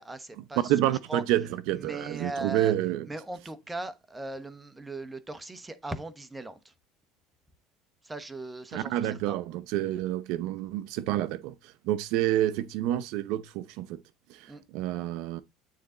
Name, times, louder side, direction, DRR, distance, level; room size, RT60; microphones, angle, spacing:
voice 1, 0.0-0.7 1.1-1.2 1.7-2.7 3.1-6.7 8.0-9.3 14.5-14.6, right 2 dB, 10° right, 1.1 m, -39 dB
voice 2, 0.6-3.1 8.7-14.0 14.3-15.4, right 13 dB, 70° right, 0.6 m, -29 dB
9.4 x 4.0 x 3.8 m
supercardioid pair, 120°, 0 cm